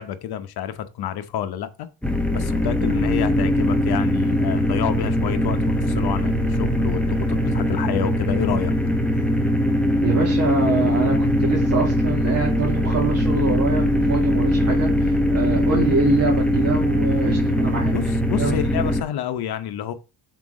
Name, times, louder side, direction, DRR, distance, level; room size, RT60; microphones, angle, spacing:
voice 1, 0.0-1.9 2.3-8.7 17.9-19.9, left 10 dB, 65° left, 0.9 m, -29 dB
sound 1, 2.0-19.0, equal, 5° left, 1.0 m, -21 dB
voice 2, 10.0-17.9 18.4-18.6, right 4 dB, 35° right, 2.2 m, -25 dB
6.0 x 4.7 x 4.9 m
cardioid pair, 130°, 41 cm